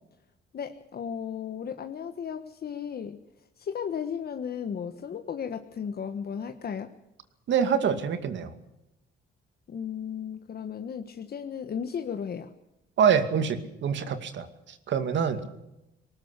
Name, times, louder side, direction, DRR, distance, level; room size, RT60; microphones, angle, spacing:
voice 1, 0.5-3.2 3.6-6.9 9.7-12.5, left 7 dB, 50° left, 7 dB, 1.5 m, -35 dB
voice 2, 7.5-8.5 13.0-15.5, right 7 dB, 70° right, 9 dB, 2.4 m, -26 dB
19.0 x 19.0 x 8.3 m, 0.89 s
cardioid pair, 90°, 20 cm